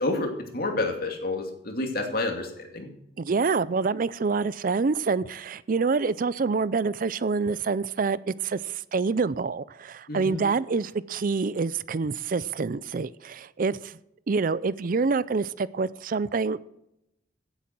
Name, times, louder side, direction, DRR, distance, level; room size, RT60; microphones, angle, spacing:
voice 1, 0.0-2.9 10.1-10.4, left 2 dB, 55° left, 3 dB, 2.6 m, -29 dB
voice 2, 3.2-13.9 14.3-16.6, right 4 dB, 50° right, 18 dB, 0.5 m, -26 dB
16.0 x 8.2 x 6.1 m, 0.84 s
head